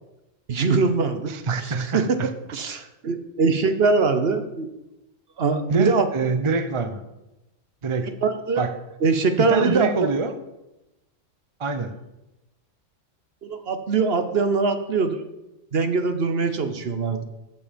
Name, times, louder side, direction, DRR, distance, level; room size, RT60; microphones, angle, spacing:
voice 1, 0.5-1.3 1.6-2.0 2.5-4.7 5.4-6.1 8.2-8.7 9.0-9.9 13.4-15.2 15.7-17.2, right 4 dB, 50° right, 9 dB, 1.1 m, -22 dB
voice 2, 1.3-2.3 5.7-7.0 7.8-8.2 8.6-8.8 9.5-10.3 11.6-12.0, right 4 dB, 30° right, 10 dB, 0.6 m, -25 dB
13.5 x 7.1 x 5.2 m, 0.96 s
omnidirectional pair, 1.4 m